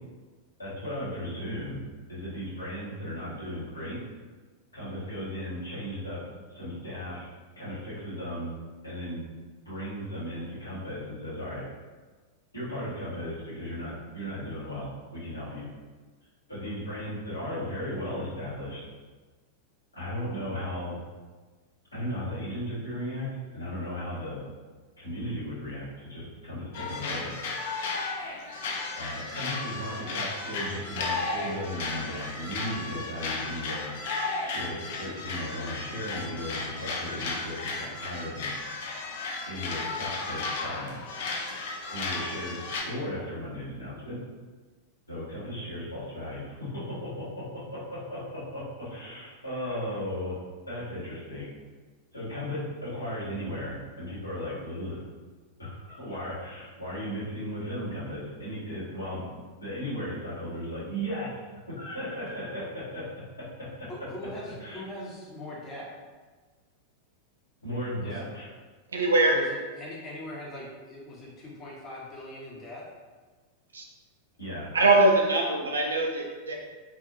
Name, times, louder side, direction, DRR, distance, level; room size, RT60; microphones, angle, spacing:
voice 1, 0.6-1.8 2.1-4.0 4.7-6.2 6.5-7.3 7.6-8.5 8.8-9.2 9.6-11.6 12.5-15.7 16.5-18.8 19.9-21.0 21.9-23.3 23.5-24.4 25.0-27.3 29.0-33.9 34.4-38.5 39.5-41.0 41.9-44.2 45.1-50.4 50.7-51.5 52.1-55.0 55.6-59.2 59.6-63.1 63.4-63.9 64.6-64.8 67.6-68.5 74.4-74.7, equal, 80° left, -10 dB, 1.3 m, -36 dB
sound 1, 26.7-42.8, left 3 dB, 55° left, 0.4 m, -34 dB
voice 2, 63.9-65.9 68.0-68.1 69.3-72.9, left 1 dB, 25° left, -5 dB, 0.7 m, -41 dB
voice 3, 68.9-69.4 73.7-73.8 74.7-76.5, right 2 dB, 70° right, 0 dB, 0.5 m, -22 dB
2.5 x 2.4 x 2.5 m, 1.4 s
figure-of-eight pair, 90°, 0 cm